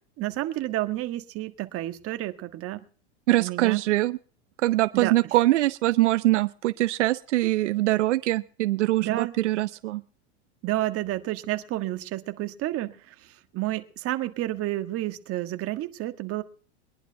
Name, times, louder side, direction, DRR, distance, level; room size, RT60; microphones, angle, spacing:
voice 1, 0.2-2.8 3.4-3.8 4.9-5.3 9.0-9.3 10.6-16.4, right 15 dB, 40° right, 8 dB, 1.6 m, -30 dB
voice 2, 3.3-4.2 4.6-10.0, right 17 dB, 85° right, 14 dB, 0.7 m, -23 dB
21.5 x 11.0 x 4.6 m, 0.43 s
supercardioid pair, 120°, 35 cm